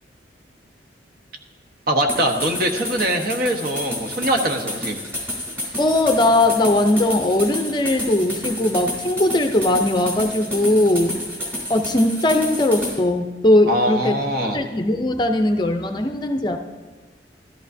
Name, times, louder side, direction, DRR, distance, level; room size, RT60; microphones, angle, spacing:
voice 1, 1.9-5.0 13.7-14.6, right 1 dB, 55° right, 3 dB, 1.1 m, -22 dB
sound 1, 2.1-13.0, left 1 dB, 15° right, 3.2 m, -30 dB
voice 2, 5.8-11.2 11.7-14.1 14.5-16.6, left 1 dB, 25° left, 6 dB, 0.5 m, -19 dB
14.0 x 13.0 x 2.7 m, 1.3 s
head